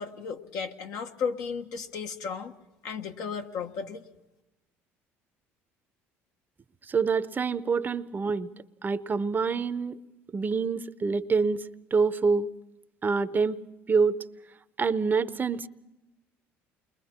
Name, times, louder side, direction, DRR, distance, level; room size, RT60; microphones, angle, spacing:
voice 1, 0.0-2.5 2.8-4.0, left 6 dB, 70° left, 4 dB, 1.3 m, -34 dB
voice 2, 6.9-8.5 8.8-10.0 10.3-11.6 11.9-12.5 13.0-13.6 13.9-14.2 14.8-15.7, right 5 dB, 30° right, 14 dB, 0.7 m, -26 dB
29.0 x 22.0 x 4.4 m, 0.96 s
supercardioid pair, 75°, 6 cm